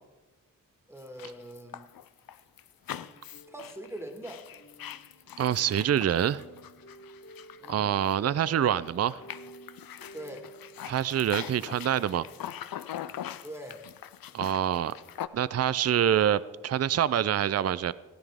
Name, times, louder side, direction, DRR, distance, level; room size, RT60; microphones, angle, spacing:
voice 1, 0.9-1.9 2.9-4.5 7.6-8.0 10.1-10.5 13.4-13.9, right 1 dB, 5° right, 4 dB, 1.8 m, -43 dB
sound 1, 1.0-8.6 8.8-15.3, left 11 dB, 85° left, 0.5 m, -42 dB
sound 2, 3.3-11.1, equal, 60° left, 2.5 m, -52 dB
voice 2, 5.4-6.4 7.7-9.2 10.9-12.2 14.3-14.9 15.3-17.9, right 10 dB, 50° right, 17 dB, 0.4 m, -26 dB
15.5 x 13.0 x 3.6 m, 1.2 s
cardioid pair, 55°, 34 cm